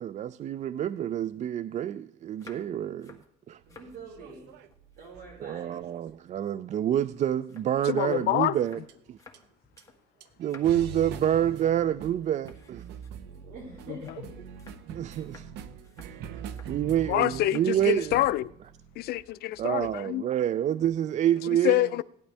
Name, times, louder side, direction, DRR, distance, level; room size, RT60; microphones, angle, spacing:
voice 1, 0.0-3.2 3.5-3.6 5.4-8.8 9.1-9.2 10.4-12.8 14.9-15.5 16.7-18.1 19.6-21.9, right 11 dB, 45° right, 0.4 m, -27 dB
sound 1, 2.2-4.0 4.3-5.5 5.8-10.0 10.3-10.9 11.3-11.6 11.9-12.1 12.5-16.8 17.4-17.8 18.1-18.5, left 4 dB, 20° left, 1.8 m, -55 dB
voice 2, 3.7-4.5 5.0-5.9 10.6-11.3 13.2-14.4 16.2-16.5, right 4 dB, 65° right, 5.2 m, -46 dB
sound 2, 3.7-6.2 7.2-7.7 8.9-9.0 9.3-9.4 9.8-9.9 10.2-20.0, right 6 dB, 90° right, 0.9 m, -44 dB
voice 3, 7.8-8.6 13.9-14.1 17.1-18.5 19.0-20.2 21.6-22.0, left 15 dB, 70° left, 0.4 m, -26 dB
17.0 x 11.5 x 3.4 m
cardioid pair, 110°, 17 cm